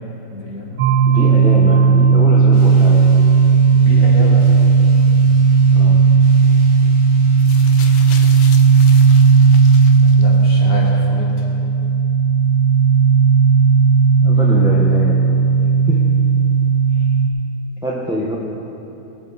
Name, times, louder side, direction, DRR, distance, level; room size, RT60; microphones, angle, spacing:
voice 1, 0.3-1.2 3.7-4.5 10.0-11.5, equal, 50° left, -4 dB, 2.6 m, -28 dB
sound 1, 0.8-17.3, right 5 dB, 75° right, 1.4 m, -13 dB
voice 2, 1.1-3.0 5.7-6.1 14.2-15.3 15.9-16.1 16.9-17.1 17.8-18.4, equal, 5° right, -4 dB, 0.7 m, -24 dB
sound 2, 2.5-10.0, right 3 dB, 40° right, 1.7 m, -40 dB
sound 3, 7.4-10.6 11.5-11.6, left 7 dB, 80° left, 1.4 m, -37 dB
20.5 x 7.3 x 4.1 m, 2.9 s
omnidirectional pair, 1.9 m